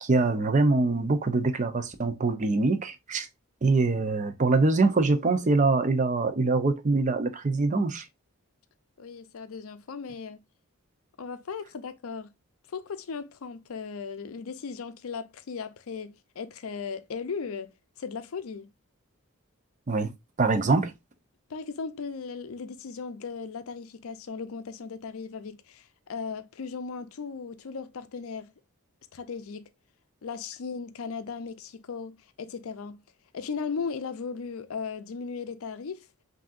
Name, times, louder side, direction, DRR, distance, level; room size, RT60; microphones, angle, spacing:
voice 1, 0.0-3.3 3.6-8.1 19.9-20.1 20.4-20.9, right 3 dB, 35° right, 0.5 m, -24 dB
voice 2, 9.0-10.4 11.2-12.3 12.7-18.7 21.5-28.5 29.1-29.7 30.2-33.0 33.3-36.1, left 5 dB, 70° left, 0.5 m, -37 dB
6.0 x 2.7 x 2.4 m
head